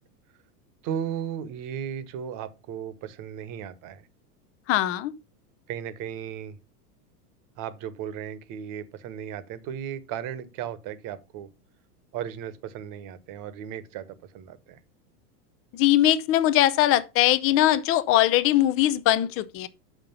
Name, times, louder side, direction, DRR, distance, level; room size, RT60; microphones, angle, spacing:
voice 1, 0.8-4.1 5.7-6.6 7.6-11.5 12.1-14.8, right 9 dB, 40° right, 1.2 m, -35 dB
voice 2, 4.7-5.1 15.7-19.7, left 13 dB, 30° left, 0.5 m, -21 dB
6.5 x 5.9 x 5.6 m
supercardioid pair, 130°, 49 cm